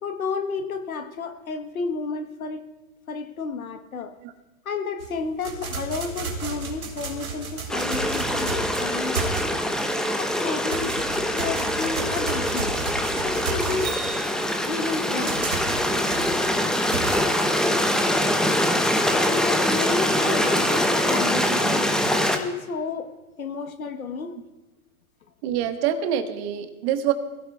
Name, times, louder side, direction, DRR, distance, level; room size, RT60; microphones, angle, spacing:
voice 1, 0.0-2.6 3.1-4.1 4.6-9.7 10.2-10.9 11.4-12.8 13.2-13.9 14.7-15.6 19.1-23.1 23.4-24.3, left 4 dB, 75° left, 8 dB, 1.4 m, -31 dB
sound 1, 5.0-9.8 10.2-17.2, right 4 dB, 75° right, 2.5 m, -33 dB
Stream, 7.7-22.4, left 1 dB, ahead, 1.1 m, -24 dB
voice 2, 25.4-27.1, right 9 dB, 45° right, 7 dB, 1.6 m, -26 dB
25.5 x 16.5 x 2.4 m, 1.1 s
figure-of-eight pair, 95°, 42 cm